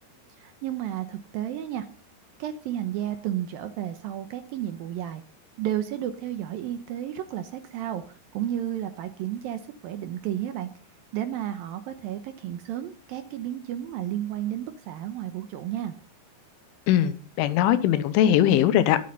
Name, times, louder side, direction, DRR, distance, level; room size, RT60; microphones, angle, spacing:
voice 1, 0.4-1.9 2.4-5.2 5.6-10.7 11.1-15.9, right 11 dB, 90° right, 2.0 m, -32 dB
voice 2, 16.9-19.0, left 11 dB, 90° left, 3.4 m, -20 dB
22.5 x 8.7 x 4.1 m
omnidirectional pair, 5.4 m